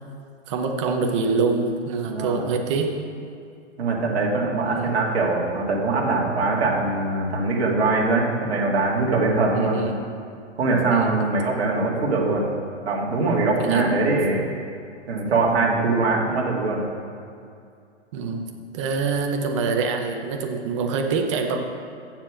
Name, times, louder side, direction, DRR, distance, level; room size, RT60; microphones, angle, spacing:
voice 1, 0.5-2.9 4.6-4.9 9.5-10.0 10.9-11.1 13.2-13.9 18.1-21.6, right 4 dB, 25° right, 4 dB, 0.7 m, -25 dB
voice 2, 2.1-2.5 3.8-10.0 10.6-12.6 12.8-14.5 15.1-16.9, right 3 dB, 60° right, -2 dB, 2.1 m, -22 dB
7.5 x 7.2 x 6.4 m, 2.4 s
hypercardioid pair, 155°, 36 cm